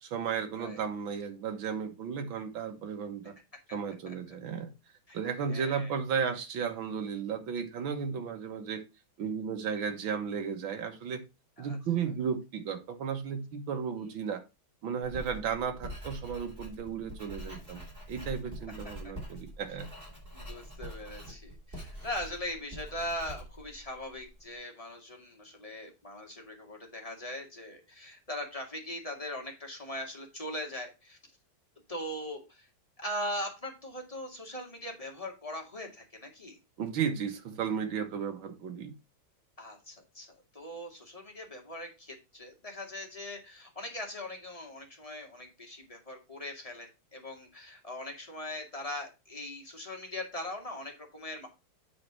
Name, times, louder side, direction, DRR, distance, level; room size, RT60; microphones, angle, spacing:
voice 1, 0.0-3.3 3.7-4.7 5.1-8.8 9.2-11.2 11.6-14.4 14.8-17.8 18.1-19.9 36.8-38.9, right 6 dB, 70° right, 6 dB, 2.1 m, -34 dB
voice 2, 5.5-5.9 11.6-11.8 19.0-19.1 20.3-31.2 31.9-32.7 33.0-36.6 39.6-51.5, left 1 dB, 15° left, 1 dB, 2.0 m, -40 dB
Writing, 15.0-24.4, equal, 25° right, 4.0 m, -45 dB
8.6 x 4.4 x 5.9 m, 0.27 s
omnidirectional pair, 2.3 m